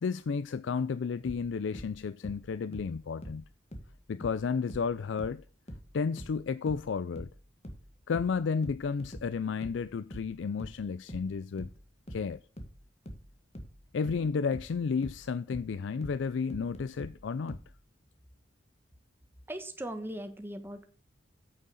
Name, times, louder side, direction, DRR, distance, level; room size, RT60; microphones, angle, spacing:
voice 1, 0.0-3.5 4.1-5.4 5.9-7.3 8.1-11.7 12.1-12.4 13.9-17.6, left 5 dB, 75° left, 0.4 m, -32 dB
sound 1, 1.3-4.4 4.7-17.7, equal, 35° left, 1.8 m, -45 dB
voice 2, 19.5-20.9, right 1 dB, 10° right, 1.3 m, -39 dB
9.2 x 6.5 x 5.6 m
head